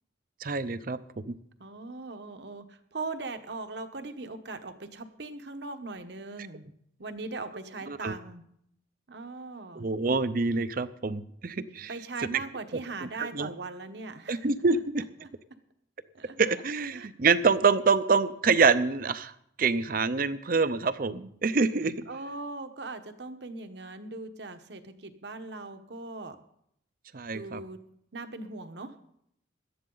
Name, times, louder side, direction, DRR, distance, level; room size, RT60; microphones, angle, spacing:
voice 1, 0.4-1.0 1.3-1.4 7.9-8.2 9.8-11.9 12.3-12.4 13.2-13.5 14.3-15.0 16.4-19.3 19.6-22.0 27.1-27.6, right 4 dB, 50° right, 14 dB, 0.6 m, -26 dB
voice 2, 1.6-6.7 7.0-8.4 9.1-9.9 11.9-14.5 14.7-14.8 15.2-15.3 16.1-16.4 16.9-17.1 22.1-26.4 27.3-27.8 28.1-28.9, right 3 dB, 65° right, 8 dB, 1.1 m, -40 dB
17.5 x 12.0 x 3.9 m, 0.74 s
head